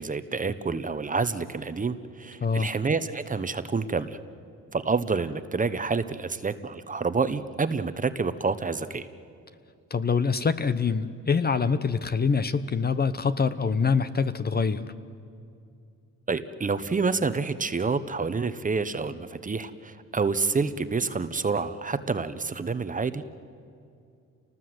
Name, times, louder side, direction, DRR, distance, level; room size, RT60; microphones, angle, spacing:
voice 1, 0.0-4.2 4.7-9.1 16.3-23.3, right 4 dB, 25° right, 12 dB, 1.1 m, -28 dB
voice 2, 9.9-14.9, left 5 dB, 30° left, 12 dB, 1.0 m, -25 dB
29.0 x 19.5 x 7.9 m, 2.5 s
cardioid pair, 90°, 30 cm